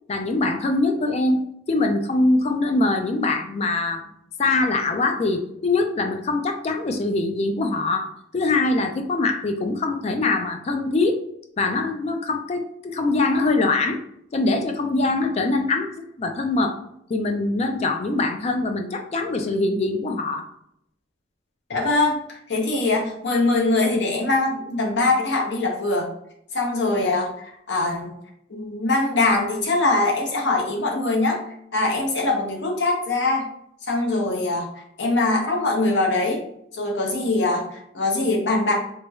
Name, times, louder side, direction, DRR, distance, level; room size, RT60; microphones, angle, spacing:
voice 1, 0.1-1.4 1.7-4.0 4.4-11.2 11.6-14.0 14.3-16.7 17.1-20.5, left 2 dB, 35° left, 5 dB, 0.3 m, -23 dB
voice 2, 21.7-26.1 26.5-28.1 28.5-31.4 31.7-33.5 33.9-36.4 36.7-38.7, left 2 dB, 65° left, 0 dB, 0.7 m, -22 dB
3.1 x 3.0 x 2.3 m, 0.75 s
head